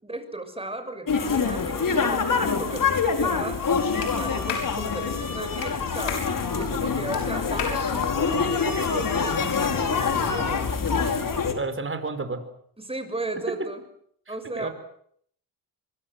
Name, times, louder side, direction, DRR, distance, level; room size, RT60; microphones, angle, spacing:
voice 1, 0.0-3.6 3.9-6.2 6.5-10.7 12.8-13.8 14.3-14.7, right 2 dB, 15° right, 8 dB, 6.6 m, -36 dB
sound 1, 1.1-11.5, left 5 dB, 50° left, 4.7 m, -25 dB
Clapping, 4.0-4.1 4.5-4.7 5.6-5.7 6.1-6.3 7.1-7.2 7.6-7.8, left 7 dB, 85° left, 6.7 m, -31 dB
voice 2, 11.6-12.5 14.3-14.7, right 3 dB, 30° right, 9 dB, 5.2 m, -31 dB
25.0 x 24.0 x 7.9 m, 0.66 s
cardioid pair, 75°, 41 cm